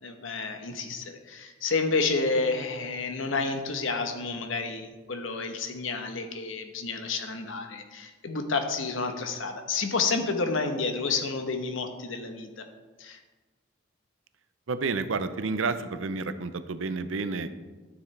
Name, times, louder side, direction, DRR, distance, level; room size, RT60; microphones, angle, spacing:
voice 1, 0.0-12.6 13.0-13.2, left 4 dB, 75° left, 6 dB, 1.0 m, -30 dB
voice 2, 14.7-17.5, right 4 dB, 80° right, 12 dB, 0.6 m, -30 dB
12.5 x 7.1 x 3.3 m, 1.3 s
head